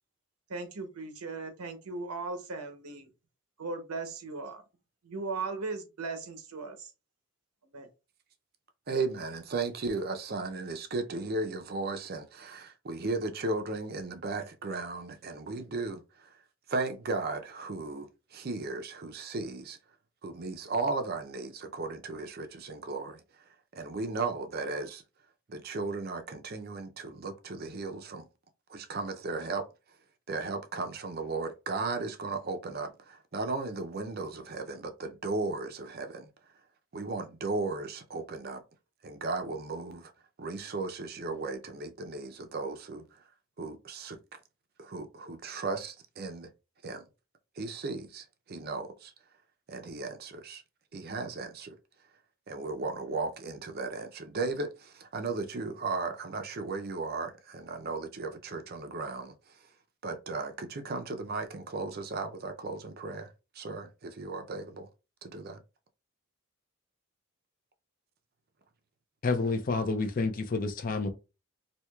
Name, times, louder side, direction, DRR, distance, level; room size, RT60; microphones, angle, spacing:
voice 1, 0.5-3.1 3.6-4.6 5.0-6.9 7.7-7.9, right 3 dB, 90° right, 0.8 m, -37 dB
voice 2, 8.9-16.4 16.7-19.8 20.2-23.2 23.7-25.0 25.5-28.2 28.7-29.7 30.3-36.3 36.9-38.6 39.0-40.1 40.4-43.2 43.6-44.2 44.8-46.5 46.8-47.0 47.6-49.1 49.7-50.6 50.9-51.8 52.5-59.7 60.0-64.9 65.2-65.6, right 3 dB, 45° right, 0.5 m, -36 dB
voice 3, 69.2-71.1, left 3 dB, 40° left, 0.4 m, -29 dB
4.4 x 2.7 x 2.3 m
head